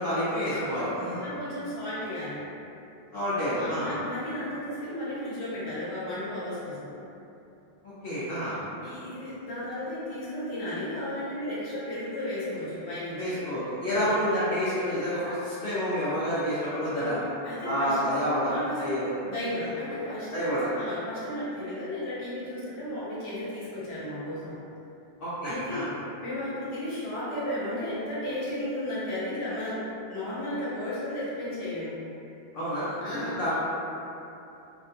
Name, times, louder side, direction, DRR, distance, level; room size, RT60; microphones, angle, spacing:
voice 1, 0.0-1.2 3.1-3.9 8.0-8.6 13.2-17.2 17.6-19.1 20.3-20.7 25.2-25.9 32.5-33.5, equal, 65° left, -12 dB, 0.8 m, -29 dB
voice 2, 1.2-2.4 3.5-6.9 8.5-13.4 13.8-14.0 15.2-15.4 16.2-16.3 17.0-18.0 18.4-19.0 19.2-24.6 25.4-25.9 26.2-32.0 33.0-33.5, left 1 dB, 85° left, -9 dB, 1.1 m, -34 dB
2.4 x 2.2 x 2.8 m, 2.8 s
omnidirectional pair, 1.0 m